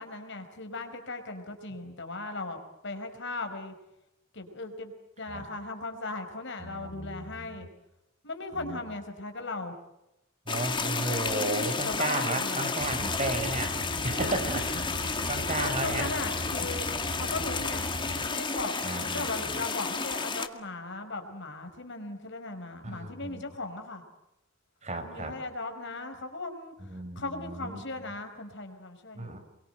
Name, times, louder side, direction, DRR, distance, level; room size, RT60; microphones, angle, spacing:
voice 1, 0.0-3.7 4.3-4.9 5.2-7.7 8.2-9.7 11.0-12.8 14.2-14.4 15.2-17.8 18.3-24.0 25.0-29.4, left 2 dB, 65° left, 6 dB, 4.9 m, -38 dB
voice 2, 6.6-7.6 8.5-8.8 10.5-13.8 14.0-14.9 15.3-16.1 18.8-19.5 22.8-23.4 24.8-25.3 26.8-27.8 29.1-29.4, right 2 dB, 35° right, 6 dB, 5.0 m, -34 dB
sound 1, 10.5-20.5, left 4 dB, 25° left, 2.0 m, -32 dB
Car, 12.8-18.3, equal, 60° right, 5.8 m, -39 dB
28.5 x 23.5 x 8.0 m, 0.88 s
head